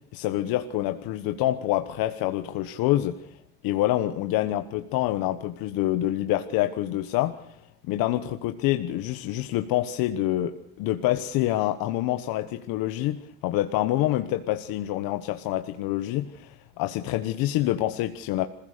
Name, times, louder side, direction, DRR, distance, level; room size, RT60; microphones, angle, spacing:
voice 1, 0.1-3.2 3.6-7.6 7.9-18.5, left 14 dB, 85° left, 8 dB, 1.2 m, -26 dB
27.0 x 16.0 x 6.7 m, 0.76 s
cardioid pair, 115°, 35 cm